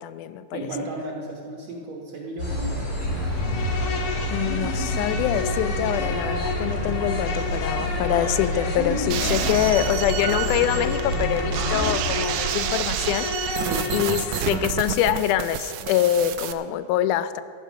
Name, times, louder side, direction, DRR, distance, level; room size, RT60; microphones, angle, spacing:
voice 1, 0.0-0.6 4.3-13.6 13.9-17.4, left 11 dB, 85° left, 13 dB, 2.1 m, -25 dB
voice 2, 0.5-2.9 9.6-9.9 13.6-13.9, right 2 dB, 65° right, -2 dB, 2.5 m, -34 dB
sound 1, 2.4-11.9, left 1 dB, 45° left, 5.8 m, -28 dB
Insect, 3.3-14.7, left 4 dB, 65° left, 2.2 m, -32 dB
sound 2, 9.1-16.5, right 11 dB, 80° right, 2.0 m, -29 dB
14.0 x 12.0 x 6.0 m, 2.2 s
omnidirectional pair, 3.5 m